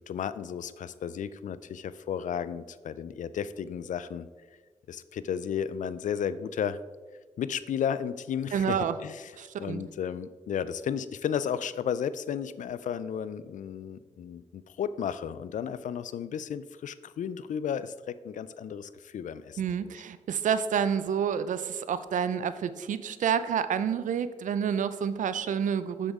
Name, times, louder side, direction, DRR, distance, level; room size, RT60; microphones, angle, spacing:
voice 1, 0.0-4.3 4.9-6.8 7.4-9.3 9.6-19.9, left 8 dB, 75° left, 15 dB, 0.4 m, -33 dB
voice 2, 8.5-9.0 9.4-9.8 19.6-26.1, right 8 dB, 80° right, 13 dB, 0.4 m, -29 dB
7.1 x 6.8 x 3.6 m, 1.4 s
cardioid pair, 50°, 13 cm